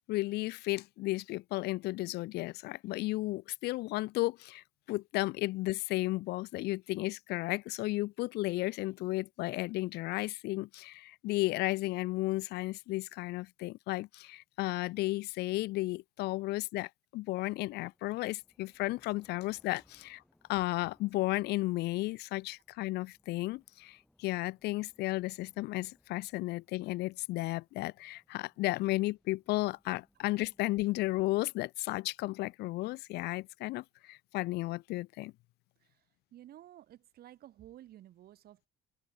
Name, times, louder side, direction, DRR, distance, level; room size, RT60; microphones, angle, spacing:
voice 1, 0.1-20.2 20.5-35.3, left 19 dB, 75° left, 0.4 m, -34 dB
sound 1, 17.5-31.6, left 1 dB, 5° left, 7.8 m, -71 dB
voice 2, 36.3-38.7, right 13 dB, 65° right, 4.1 m, -53 dB
cardioid pair, 110°, 17 cm